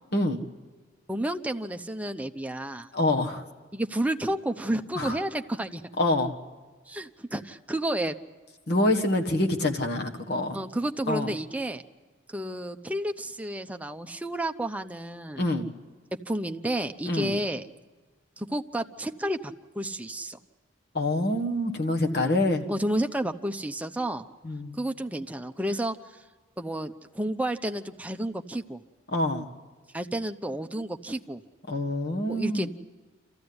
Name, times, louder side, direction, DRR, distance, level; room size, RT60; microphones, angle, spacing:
voice 1, 0.1-0.4 2.9-3.4 4.9-5.2 6.0-6.3 8.7-10.6 11.1-11.3 15.4-15.7 17.1-17.3 20.9-22.6 24.4-24.7 29.1-29.5 31.7-32.7, left 1 dB, 55° left, 4 dB, 1.6 m, -26 dB
voice 2, 1.1-2.9 3.7-5.9 6.9-8.1 10.5-11.8 12.3-15.4 16.3-17.7 18.4-20.4 22.1-22.4 22.7-24.3 24.7-26.0 26.6-28.8 29.9-31.4 32.3-32.7, right 1 dB, 5° right, 6 dB, 0.7 m, -31 dB
27.0 x 14.5 x 9.6 m, 1.3 s
head